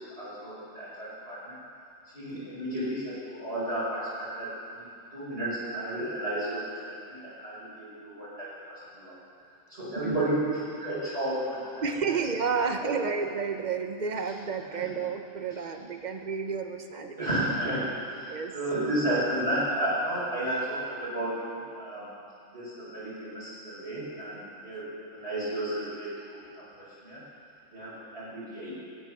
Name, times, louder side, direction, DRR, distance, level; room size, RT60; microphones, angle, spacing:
voice 1, 0.2-1.5 2.1-9.1 9.7-11.8 12.8-12.9 14.7-14.9 17.2-17.9 18.1-22.1 22.5-26.6 27.0-27.2 27.7-28.7, right 1 dB, 55° right, -11 dB, 5.7 m, -32 dB
voice 2, 11.8-17.4 18.3-18.5, right 5 dB, 40° right, 5 dB, 1.1 m, -31 dB
23.5 x 10.0 x 6.1 m, 2.5 s
omnidirectional pair, 1.3 m